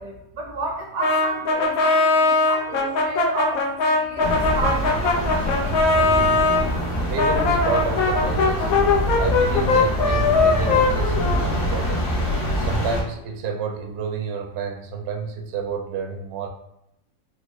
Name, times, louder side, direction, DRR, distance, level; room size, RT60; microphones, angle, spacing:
voice 1, 0.0-3.6 3.9-6.2, right 3 dB, 85° right, 1 dB, 1.2 m, -31 dB
Brass instrument, 1.0-6.6 7.2-11.9, left 3 dB, 90° left, 1.1 m, -20 dB
sound 1, 4.2-13.0, equal, 60° left, 1.2 m, -25 dB
voice 2, 7.1-8.7 9.2-12.0 12.5-16.5, right 5 dB, 60° right, 3 dB, 0.7 m, -30 dB
4.1 x 2.1 x 3.0 m, 0.84 s
omnidirectional pair, 1.4 m